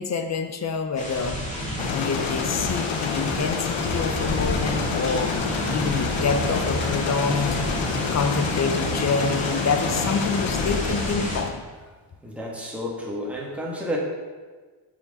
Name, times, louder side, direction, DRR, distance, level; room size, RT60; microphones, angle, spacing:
voice 1, 0.0-1.4 1.9-5.4 5.7-7.6 8.1-11.6, left 4 dB, 35° left, 7 dB, 0.6 m, -27 dB
sound 1, 1.0-11.4, left 1 dB, 15° left, 2.1 m, -30 dB
sound 2, 1.8-11.5, left 7 dB, 70° left, 0.9 m, -29 dB
sound 3, 3.7-9.1, right 3 dB, 30° right, 1.9 m, -38 dB
voice 2, 12.2-14.0, equal, 5° right, -3 dB, 1.5 m, -31 dB
9.0 x 5.9 x 4.1 m, 1.4 s
cardioid pair, 145°, 47 cm